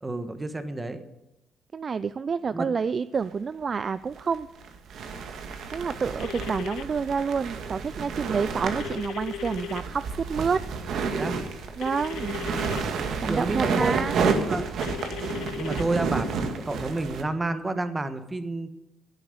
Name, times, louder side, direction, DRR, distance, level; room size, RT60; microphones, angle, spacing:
voice 1, 0.0-1.0 2.5-2.7 11.1-11.4 13.3-13.9 14.2-14.7 15.3-18.7, right 2 dB, 15° right, 9 dB, 1.4 m, -30 dB
voice 2, 1.7-4.5 5.7-10.6 11.8-12.4 13.2-14.2, right 5 dB, 40° right, 14 dB, 0.4 m, -28 dB
sound 1, 3.2-3.3 4.1-17.2, right 5 dB, 65° right, 1.9 m, -30 dB
sound 2, 6.2-6.8 8.8-9.8 11.8-12.8 14.8-15.8, left 12 dB, 80° left, 0.7 m, -37 dB
11.5 x 9.1 x 9.7 m, 0.93 s
cardioid pair, 110°, 0 cm